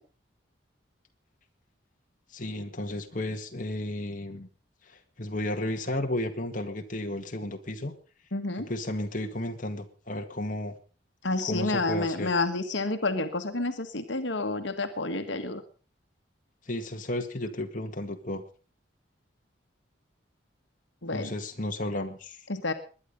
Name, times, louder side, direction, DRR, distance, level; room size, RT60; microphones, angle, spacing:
voice 1, 2.3-4.5 4.8-7.9 8.6-10.8 11.4-12.3 16.7-18.4 21.1-22.4, left 1 dB, 45° left, 4 dB, 1.9 m, -33 dB
voice 2, 8.3-8.7 11.2-15.6 21.0-21.3 22.5-22.7, left 2 dB, 75° left, 7 dB, 1.6 m, -29 dB
21.0 x 10.5 x 5.4 m, 0.38 s
head